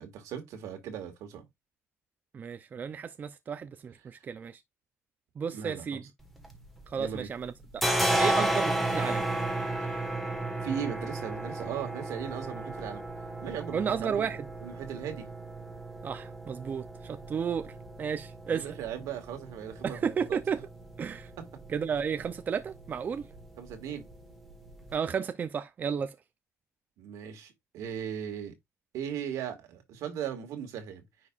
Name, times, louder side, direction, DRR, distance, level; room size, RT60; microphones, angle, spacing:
voice 1, 0.0-1.5 5.5-6.0 6.9-7.3 10.6-13.0 13.4-14.3 14.6-15.3 18.5-20.1 23.6-24.1 27.0-28.5 28.9-31.0, right 8 dB, 85° right, 2.0 m, -38 dB
voice 2, 2.3-4.6 5.4-6.0 6.9-7.9 8.2-9.2 13.7-14.5 16.0-17.7 18.0-18.7 19.8-20.6 21.0-21.3 21.7-23.3 24.9-26.1, right 7 dB, 35° right, 0.5 m, -33 dB
sound 1, 6.2-7.2 7.4-24.9, right 1 dB, ahead, 1.5 m, -34 dB
9.7 x 4.7 x 2.5 m
cardioid pair, 145°, 5 cm